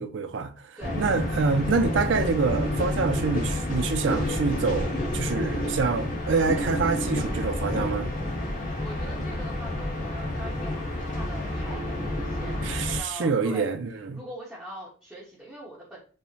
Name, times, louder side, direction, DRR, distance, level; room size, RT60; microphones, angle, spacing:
voice 1, 0.0-8.1 12.6-14.2, right 4 dB, 65° right, 0.4 m, -26 dB
sound 1, 0.8-13.0, left 1 dB, 40° left, 1.0 m, -29 dB
voice 2, 0.8-1.1 1.3-1.5 8.5-13.8 14.1-16.0, equal, 10° right, 0.8 m, -42 dB
4.7 x 2.0 x 2.7 m
head